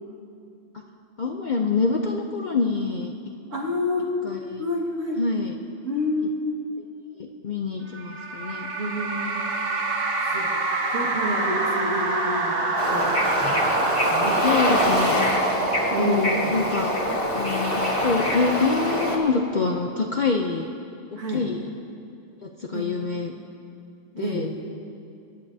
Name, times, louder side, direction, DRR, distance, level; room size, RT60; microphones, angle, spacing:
voice 1, 1.2-3.1 4.2-4.6 5.2-5.6 7.2-8.7 14.4-15.3 16.0-17.0 17.2-20.7 21.1-21.7 22.4-23.3 24.1-24.5, left 4 dB, 55° left, 2 dB, 0.5 m, -26 dB
voice 2, 3.5-4.1 4.6-5.2 5.8-6.6 8.8-9.5 10.3-10.5 10.9-13.2 14.1-14.5 15.9-16.5 21.2-21.5 22.7-22.9 24.2-24.5, left 1 dB, 75° right, -3 dB, 2.1 m, -28 dB
sound 1, 7.9-17.6, right 3 dB, 50° right, 1.2 m, -27 dB
Bird / Ocean, 12.8-19.2, equal, 25° left, 1.3 m, -24 dB
22.5 x 10.5 x 2.7 m, 2.6 s
omnidirectional pair, 1.3 m